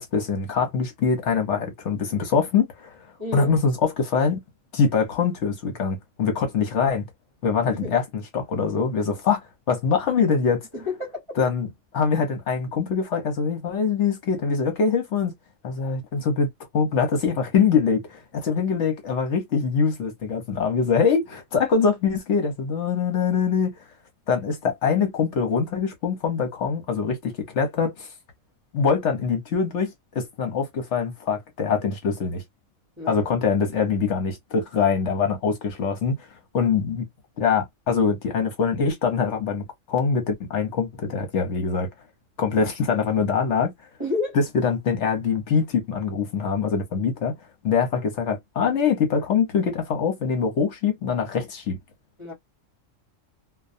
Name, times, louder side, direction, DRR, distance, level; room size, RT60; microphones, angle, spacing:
voice 1, 0.0-2.9 3.3-4.4 4.7-7.0 7.4-9.4 9.7-10.6 11.4-11.7 11.9-15.3 15.6-23.7 24.3-28.1 28.7-32.4 33.1-36.2 36.5-37.1 37.4-41.9 42.4-43.7 44.5-47.3 47.6-51.8, left 6 dB, 65° left, 1.1 m, -23 dB
voice 2, 3.2-3.5 7.8-7.9 10.7-11.2 33.0-33.3 44.0-44.4 52.2-52.3, left 3 dB, 25° right, 1.0 m, -30 dB
2.4 x 2.2 x 2.5 m
omnidirectional pair, 1.3 m